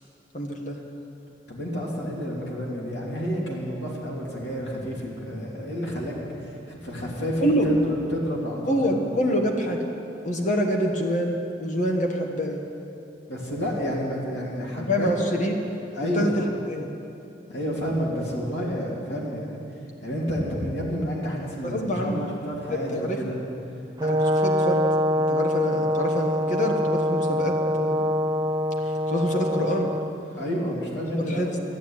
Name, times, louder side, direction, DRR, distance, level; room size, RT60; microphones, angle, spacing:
voice 1, 0.3-0.8 7.4-7.7 8.6-9.9 10.2-12.6 14.8-15.5 16.1-16.9 21.6-23.2 24.0-24.8 25.2-28.1 28.8-29.9 31.2-31.6, equal, 45° left, 1 dB, 1.3 m, -26 dB
voice 2, 1.5-9.0 13.3-15.4 15.9-16.5 17.5-19.6 20.0-23.4 30.3-31.5, equal, 70° left, -3 dB, 3.1 m, -30 dB
Brass instrument, 24.0-30.1, equal, 20° right, 0.7 m, -24 dB
12.5 x 10.0 x 9.0 m, 2.7 s
head